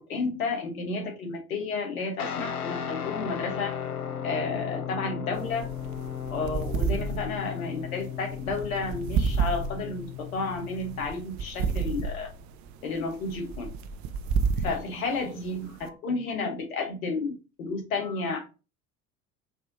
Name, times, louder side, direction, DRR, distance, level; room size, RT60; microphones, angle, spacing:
voice 1, 0.0-3.8 4.2-5.7 6.3-12.3 12.8-13.7 14.6-18.4, left 3 dB, 70° left, 3 dB, 1.4 m, -32 dB
Guitar, 2.2-11.1, left 9 dB, 85° left, 0.6 m, -36 dB
sound 1, 5.3-15.9, right 5 dB, 40° right, 0.5 m, -31 dB
4.8 x 2.7 x 3.9 m, 0.31 s
figure-of-eight pair, 65°, 44 cm